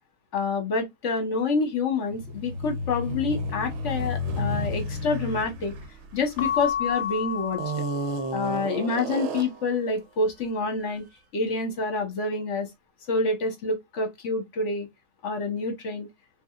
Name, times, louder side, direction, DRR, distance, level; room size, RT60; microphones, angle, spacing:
voice 1, 0.3-5.7 6.1-7.8 8.3-11.0 11.3-12.7 13.1-14.9 15.2-16.1, left 3 dB, 60° left, 1.3 m, -27 dB
sound 1, 2.1-6.9 7.5-9.7, equal, 60° right, 0.9 m, -32 dB
Keyboard (musical) / Bell, 6.4-8.8, left 9 dB, 80° left, 1.0 m, -31 dB
4.8 x 2.5 x 2.4 m
omnidirectional pair, 1.5 m